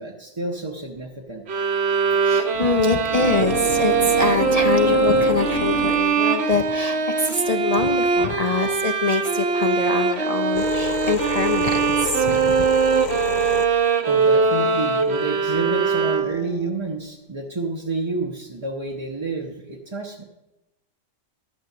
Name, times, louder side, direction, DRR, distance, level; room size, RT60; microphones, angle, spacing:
voice 1, 0.0-1.4 14.1-20.2, right 3 dB, 25° right, -1 dB, 0.7 m, -29 dB
sound 1, 1.5-16.6, right 5 dB, 55° right, 1.0 m, -21 dB
voice 2, 2.2-12.7, left 3 dB, 65° left, 6 dB, 0.3 m, -24 dB
sound 2, 2.3-8.6 9.4-15.2 16.2-16.7, left 7 dB, 80° left, 1.1 m, -31 dB
12.0 x 6.4 x 6.6 m, 0.97 s
omnidirectional pair, 1.4 m